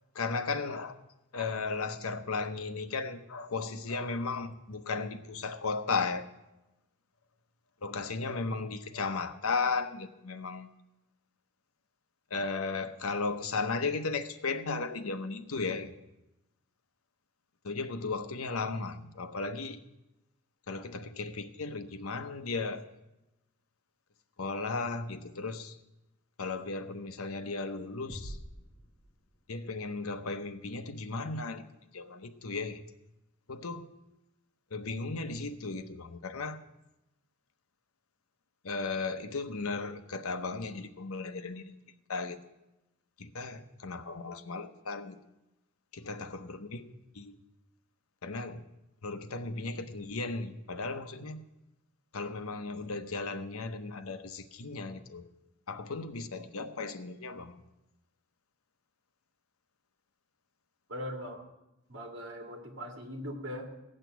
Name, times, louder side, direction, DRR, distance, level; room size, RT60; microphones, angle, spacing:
voice 1, 0.1-1.0 1.3-6.2 7.8-10.7 12.3-15.9 17.6-19.8 20.7-22.8 24.4-25.8 26.4-28.4 29.5-31.6 31.9-32.8 33.5-33.8 34.7-36.6 38.6-41.7 42.1-42.4 43.2-45.2 45.9-46.9 47.1-47.4 48.2-48.6 49.0-51.4 52.1-55.3 55.7-57.6, left 4 dB, 85° left, 0.9 m, -35 dB
sound 1, 28.1-29.8, equal, 30° left, 1.4 m, -46 dB
voice 2, 60.9-61.4 61.9-63.7, equal, 55° right, 2.4 m, -40 dB
16.0 x 6.6 x 9.2 m
head